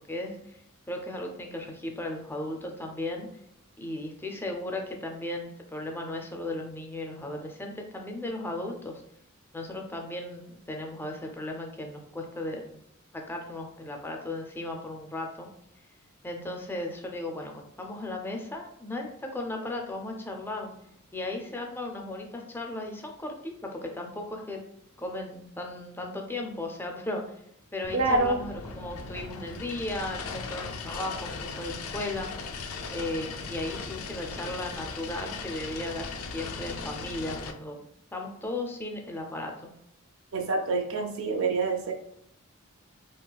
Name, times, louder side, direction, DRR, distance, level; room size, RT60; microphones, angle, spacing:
voice 1, 0.1-0.6 0.9-3.3 3.8-9.0 9.5-12.8 13.1-15.5 16.2-20.7 21.1-24.6 25.0-27.2 27.7-32.3 32.9-37.8 38.1-39.7, left 1 dB, 10° left, 2 dB, 0.4 m, -36 dB
sound 1, 27.8-37.5, left 4 dB, 80° left, 0.4 m, -38 dB
voice 2, 27.9-28.4 40.3-41.9, right 3 dB, 65° right, 3 dB, 0.5 m, -26 dB
3.8 x 2.3 x 2.3 m, 0.71 s
head